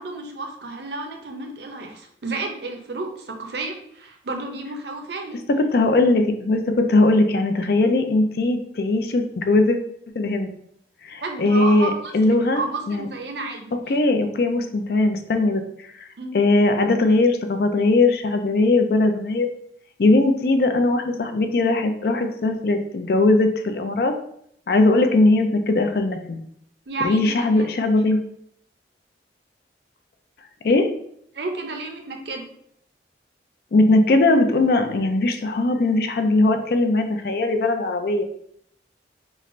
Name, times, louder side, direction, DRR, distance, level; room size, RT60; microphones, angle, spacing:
voice 1, 0.0-5.4 11.2-12.0 12.3-13.7 16.2-16.3 26.9-27.7 31.3-32.4, right 3 dB, 70° right, 4 dB, 0.6 m, -31 dB
voice 2, 5.5-9.8 10.2-10.5 11.0-12.6 12.9-13.1 13.9-16.1 16.3-19.5 20.0-24.1 24.7-26.4 27.0-28.2 30.6-30.9 33.7-38.2, left 2 dB, 55° left, 6 dB, 0.4 m, -19 dB
3.1 x 2.5 x 4.2 m, 0.70 s
head